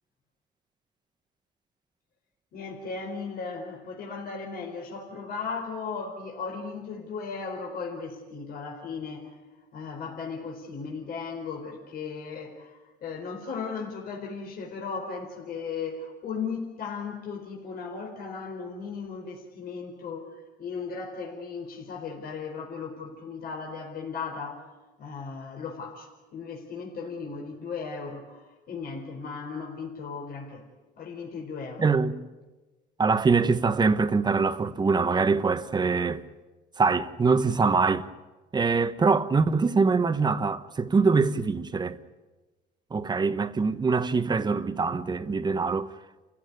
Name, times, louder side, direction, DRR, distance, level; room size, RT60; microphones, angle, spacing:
voice 1, 2.5-9.4 9.7-30.6 31.0-31.9, left 5 dB, 65° left, 4.5 m, -36 dB
voice 2, 31.8-32.1 33.0-36.2 36.8-38.1 38.5-42.0 42.9-45.9, right 4 dB, 25° right, 1.3 m, -24 dB
29.5 x 16.0 x 9.6 m
cardioid pair, 110°, 17 cm